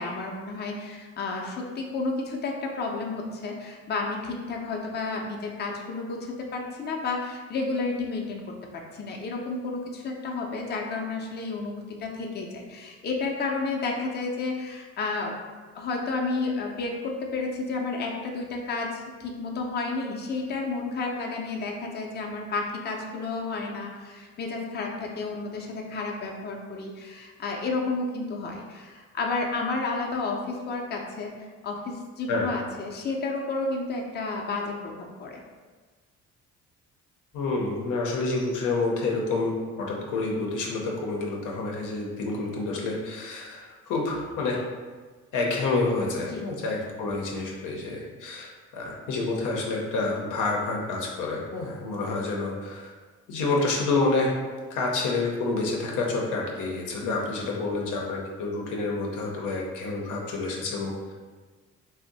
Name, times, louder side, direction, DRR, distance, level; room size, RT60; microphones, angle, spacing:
voice 1, 0.0-8.5 8.7-11.7 12.0-15.3 15.7-35.4 46.3-46.5 57.0-57.3, left 3 dB, 35° left, 0 dB, 0.5 m, -31 dB
voice 2, 37.3-44.6 45.3-52.9 53.3-54.3 54.7-61.1, left 3 dB, 85° left, -1 dB, 0.6 m, -28 dB
2.6 x 2.1 x 3.9 m, 1.4 s
cardioid pair, 90°, 30 cm